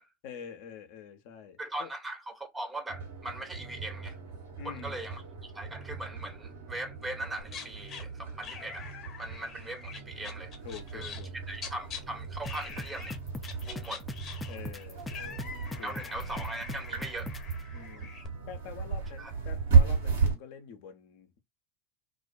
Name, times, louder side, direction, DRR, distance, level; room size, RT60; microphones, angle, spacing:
voice 1, 0.2-1.9 4.6-5.0 10.6-11.3 14.5-15.1 15.8-16.0 17.7-21.4, left 7 dB, 60° left, 0.6 m, -46 dB
voice 2, 1.6-4.2 4.6-10.5 10.9-13.2 13.6-14.0 15.8-17.3 19.2-19.3, right 1 dB, 15° right, 0.7 m, -40 dB
sound 1, 2.9-20.3, right 5 dB, 75° right, 1.1 m, -33 dB
sound 2, 7.4-8.0 8.4-12.0 12.4-13.2 13.4-18.3, left 6 dB, 40° left, 0.9 m, -44 dB
sound 3, 12.5-17.5, left 2 dB, 15° left, 0.4 m, -39 dB
2.4 x 2.1 x 2.5 m
hypercardioid pair, 80°, 0 cm